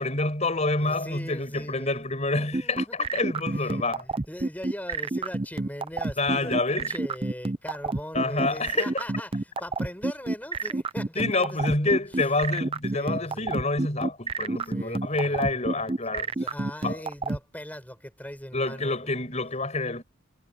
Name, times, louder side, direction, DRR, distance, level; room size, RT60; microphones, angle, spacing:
voice 1, 0.0-4.1 6.2-6.9 8.1-8.9 11.2-16.3 16.8-17.0 18.5-20.0, left 2 dB, 35° left, 5.6 m, -27 dB
voice 2, 0.8-2.1 2.4-3.2 3.5-12.0 12.9-13.6 14.6-15.8 16.1-19.1, equal, 10° left, 7.2 m, -40 dB
sound 1, 2.5-17.4, right 3 dB, 25° right, 0.6 m, -28 dB
head